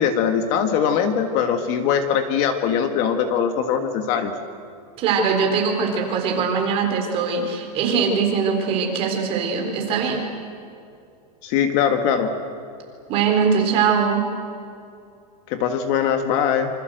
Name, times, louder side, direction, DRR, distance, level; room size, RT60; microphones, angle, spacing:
voice 1, 0.0-4.3 11.4-12.3 15.5-16.7, left 7 dB, 35° left, 7 dB, 1.7 m, -21 dB
voice 2, 5.0-10.2 13.1-14.2, right 6 dB, 30° right, 2 dB, 4.1 m, -21 dB
27.5 x 26.0 x 7.9 m, 2.5 s
supercardioid pair, 175°, 21 cm